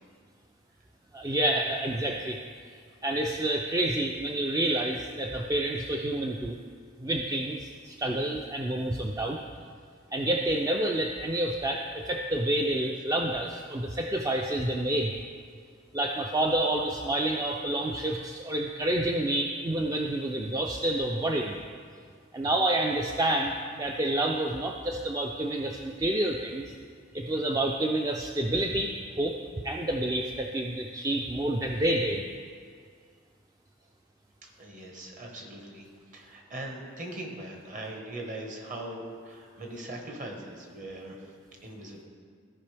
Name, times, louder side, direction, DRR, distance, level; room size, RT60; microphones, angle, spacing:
voice 1, 1.1-6.6 7.0-9.4 10.1-15.1 15.9-21.6 22.3-26.7 27.1-28.9 29.2-29.3 29.6-32.2, right 1 dB, 20° right, 2 dB, 0.4 m, -28 dB
voice 2, 34.6-35.9 36.1-41.2 41.6-42.0, right 1 dB, 40° right, 1 dB, 1.4 m, -40 dB
15.5 x 5.2 x 3.4 m, 2.1 s
head